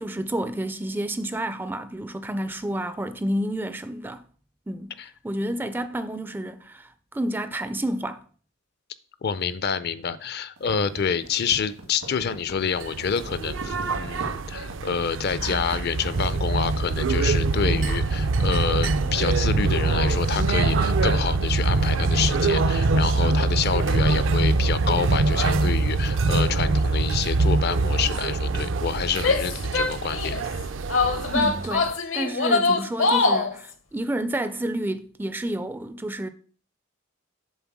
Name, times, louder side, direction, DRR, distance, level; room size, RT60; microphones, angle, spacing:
voice 1, 0.0-4.2 4.7-5.0 5.2-8.2 31.3-36.3, right 1 dB, 10° right, 0.3 m, -30 dB
voice 2, 9.2-30.4, left 6 dB, 50° left, 0.5 m, -28 dB
sound 1, 10.6-18.0, right 1 dB, 80° right, 1.6 m, -41 dB
sound 2, 12.7-31.9, right 3 dB, 65° right, 0.5 m, -24 dB
Female speech woman speaking / Yell, 29.2-30.4 30.9-33.5, left 3 dB, 70° left, 0.8 m, -23 dB
7.2 x 3.9 x 6.0 m
head